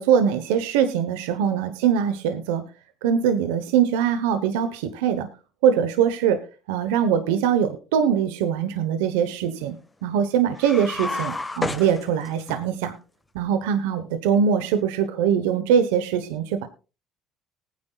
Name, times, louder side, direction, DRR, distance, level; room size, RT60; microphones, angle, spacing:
voice 1, 0.0-2.6 3.0-5.3 5.6-6.4 6.7-9.8 10.0-12.9 13.3-16.7, right 8 dB, 90° right, 9 dB, 1.0 m, -22 dB
sound 1, 10.5-12.6, left 2 dB, 15° left, 1.6 m, -30 dB
19.0 x 9.6 x 2.4 m, 0.31 s
supercardioid pair, 75°, 0 cm